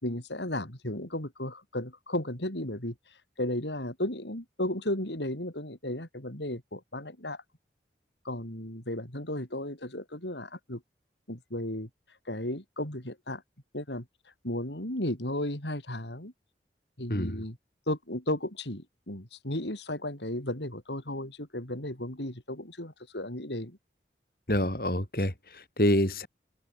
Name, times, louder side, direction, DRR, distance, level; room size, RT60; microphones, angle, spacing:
voice 1, 0.0-2.9 3.4-7.4 8.2-10.8 11.3-11.9 12.3-13.4 13.7-14.1 14.4-16.3 17.0-17.6 17.9-23.8, left 1 dB, 85° left, 6.3 m, -34 dB
voice 2, 24.5-26.3, left 1 dB, 55° left, 5.0 m, -27 dB
open air
head